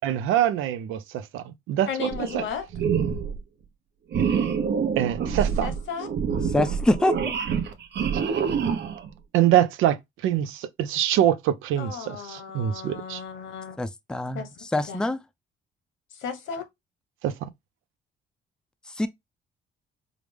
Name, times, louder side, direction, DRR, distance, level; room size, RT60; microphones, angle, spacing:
voice 1, 0.0-2.4 5.0-5.7 8.1-8.2 9.3-10.0 10.2-13.2 17.2-17.3, right 11 dB, 90° right, 0.5 m, -24 dB
voice 2, 1.9-2.6 5.6-6.1 11.8-13.8 14.3-14.5 14.8-15.0 16.2-16.6, left 6 dB, 75° left, 1.1 m, -34 dB
sound 1, 2.1-2.5 2.7-3.4 4.1-9.1, right 7 dB, 60° right, 0.8 m, -26 dB
voice 3, 6.5-7.2 13.8-14.4 14.7-15.2 19.0-19.1, left 2 dB, 5° left, 0.4 m, -24 dB
4.9 x 2.0 x 3.3 m
cardioid pair, 90°, 20 cm